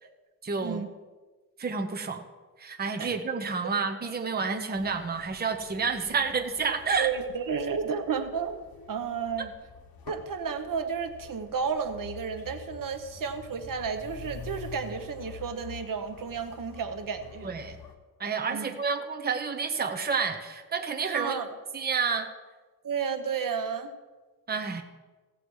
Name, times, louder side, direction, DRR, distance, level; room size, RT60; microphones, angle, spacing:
voice 1, 0.4-0.8 1.6-2.2 2.6-7.1 9.4-9.5 17.4-17.8 18.2-21.4 21.7-22.3 24.5-24.8, right 5 dB, 25° right, 4 dB, 0.8 m, -29 dB
sound 1, 4.7-17.9, left 5 dB, 70° left, 1.3 m, -47 dB
voice 2, 7.0-9.5 10.1-17.5 18.5-18.7 21.1-21.5 22.8-23.9, right 6 dB, 60° right, 8 dB, 0.9 m, -32 dB
16.0 x 7.9 x 4.6 m, 1.3 s
wide cardioid pair, 155°, 37 cm